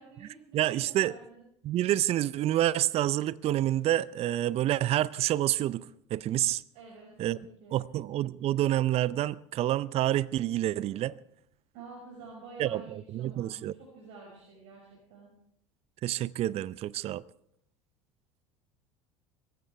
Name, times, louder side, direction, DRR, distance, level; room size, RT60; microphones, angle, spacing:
voice 1, 0.0-1.4 6.7-7.9 11.7-15.3, right 3 dB, 65° right, 5.8 m, -49 dB
voice 2, 0.5-1.1 1.6-5.9 6.1-6.6 7.2-7.4 7.7-11.2 12.6-13.7 16.0-17.2, right 13 dB, 40° right, 0.5 m, -28 dB
25.5 x 15.0 x 3.4 m
hypercardioid pair, 70°, 15 cm